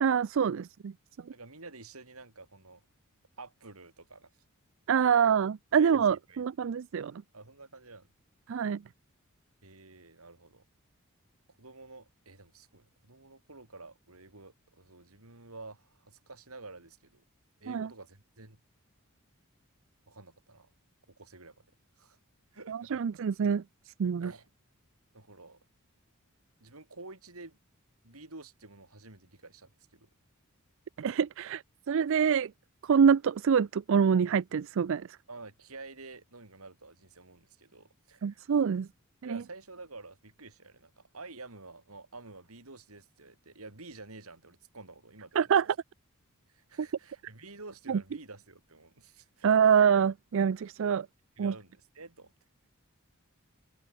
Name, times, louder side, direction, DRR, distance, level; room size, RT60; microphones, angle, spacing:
voice 1, 0.0-0.9 4.9-7.2 8.5-8.8 17.7-17.9 22.7-23.6 24.0-24.3 31.0-32.5 32.8-35.1 38.2-38.9 39.2-39.4 45.4-45.7 46.8-46.9 47.9-48.0 49.4-51.1 51.4-51.5, right 7 dB, 60° right, 0.4 m, -26 dB
voice 2, 1.3-2.8 3.4-4.3 5.1-5.2 5.7-6.8 7.3-8.1 9.6-10.6 11.6-17.2 17.6-18.6 20.1-20.7 21.2-21.6 22.0-22.2 22.5-23.0 24.2-24.5 25.1-25.6 26.6-27.6 28.0-30.1 35.3-38.5 39.2-45.5 46.5-49.7 51.4-52.3, right 3 dB, 80° right, 4.6 m, -50 dB
head